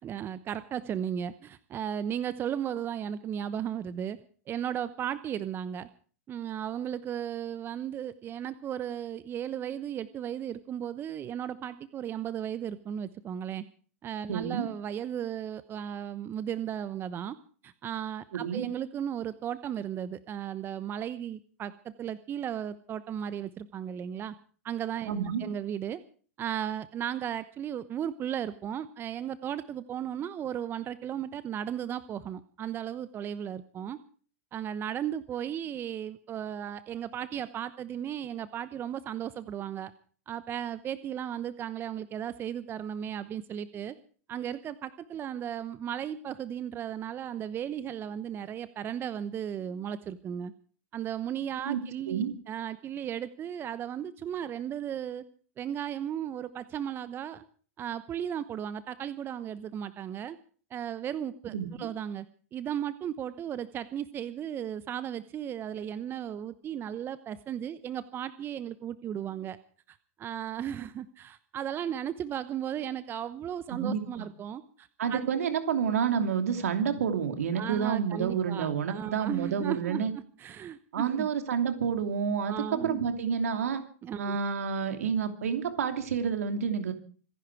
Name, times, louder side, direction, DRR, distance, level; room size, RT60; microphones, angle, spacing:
voice 1, 0.0-4.2 4.5-5.9 6.3-13.6 14.0-17.4 17.6-24.3 24.6-26.0 26.4-34.0 34.5-39.9 40.3-44.0 44.3-50.5 50.9-55.2 55.6-57.4 57.8-60.4 60.7-62.3 62.5-69.6 69.9-75.3 77.5-81.3 82.5-83.0 84.0-84.4, right 9 dB, 25° right, 15 dB, 0.9 m, -35 dB
voice 2, 14.3-14.7 18.3-18.7 25.1-25.4 51.6-51.8 52.1-52.3 61.5-61.9 73.7-74.0 75.0-80.1 80.9-83.8 84.2-86.9, right 7 dB, 75° right, 7 dB, 2.9 m, -29 dB
26.0 x 11.0 x 4.8 m, 0.43 s
hypercardioid pair, 105°, 8 cm